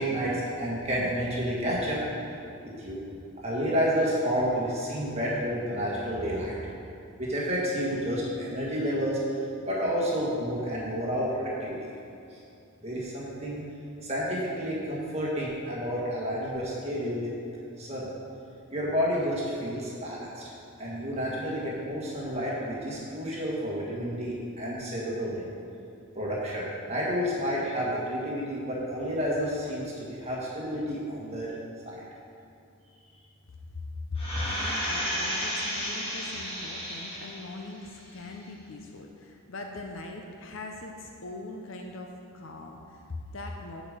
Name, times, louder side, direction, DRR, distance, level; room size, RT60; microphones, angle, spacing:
voice 1, 0.0-2.0 2.8-3.0 3.4-6.5 7.2-9.2 9.7-11.8 12.8-13.6 14.0-17.3 17.8-18.0 18.7-20.5 20.8-25.5 26.1-29.8 30.1-31.5 31.9-32.0, equal, 30° right, -6 dB, 1.5 m, -30 dB
voice 2, 34.1-43.8, left 2 dB, 60° left, 2 dB, 0.7 m, -40 dB
sound 1, 34.2-37.6 38.0-38.1, equal, 25° left, 1.9 m, -32 dB
8.6 x 5.1 x 6.6 m, 2.6 s
head